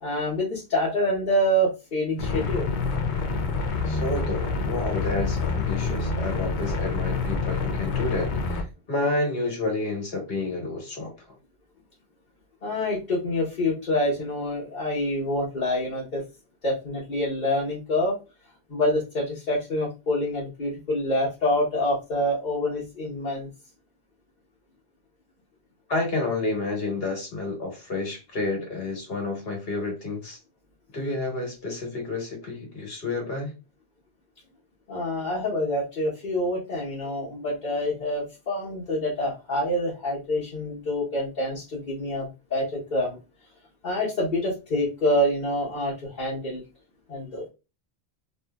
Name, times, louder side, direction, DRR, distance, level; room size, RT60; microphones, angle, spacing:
voice 1, 0.0-2.7 12.6-16.2 16.6-18.2 18.7-23.5 34.9-43.2 43.8-46.6 47.1-47.4, left 1 dB, 45° left, -7 dB, 1.1 m, -26 dB
sound 1, 2.2-8.6, left 4 dB, 90° left, 0.9 m, -27 dB
voice 2, 3.8-11.1 25.9-30.4 30.9-33.5, left 2 dB, 65° left, 1 dB, 1.3 m, -30 dB
2.7 x 2.6 x 2.2 m, 0.29 s
omnidirectional pair, 1.1 m